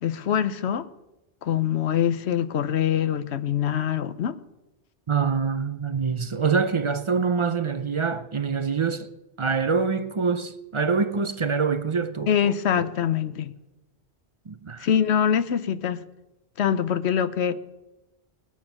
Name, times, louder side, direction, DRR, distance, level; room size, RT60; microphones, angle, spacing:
voice 1, 0.0-0.9 1.4-4.4 12.3-13.5 14.8-16.0 16.6-17.6, left 9 dB, 80° left, 1.0 m, -24 dB
voice 2, 5.1-9.1 9.4-12.3 12.7-12.9 14.5-14.9, right 5 dB, 40° right, 0.5 m, -25 dB
20.5 x 7.1 x 5.9 m
omnidirectional pair, 1.1 m